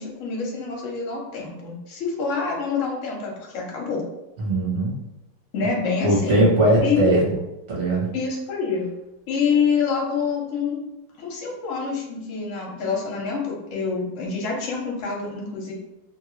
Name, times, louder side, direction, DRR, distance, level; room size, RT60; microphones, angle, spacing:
voice 1, 0.0-4.0 5.5-6.4 6.8-7.2 8.1-8.8 9.3-10.8 11.2-15.7, left 5 dB, 60° left, -2 dB, 0.8 m, -26 dB
voice 2, 4.4-5.0 6.0-7.3 7.7-8.1, right 1 dB, 45° right, -5 dB, 1.1 m, -20 dB
3.1 x 2.7 x 3.1 m, 0.93 s
omnidirectional pair, 2.4 m